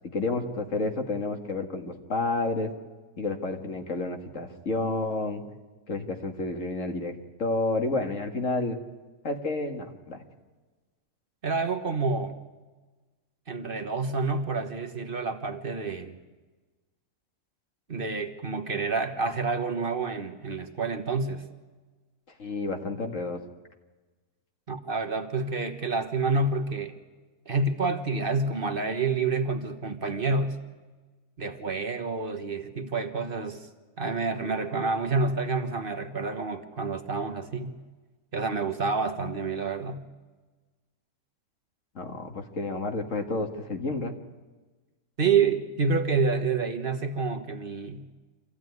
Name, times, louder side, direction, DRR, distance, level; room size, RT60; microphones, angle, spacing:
voice 1, 0.1-2.7 3.2-5.4 5.9-7.1 7.4-8.8 9.2-10.2 22.4-23.4 42.0-44.1, left 2 dB, 55° left, 4 dB, 2.1 m, -30 dB
voice 2, 11.4-12.3 13.5-16.2 17.9-21.4 24.7-26.9 27.5-30.6 31.4-33.7 34.0-37.8 38.3-40.0 45.2-48.0, right 4 dB, 40° right, 7 dB, 1.4 m, -28 dB
25.5 x 15.0 x 9.5 m, 1.3 s
omnidirectional pair, 1.6 m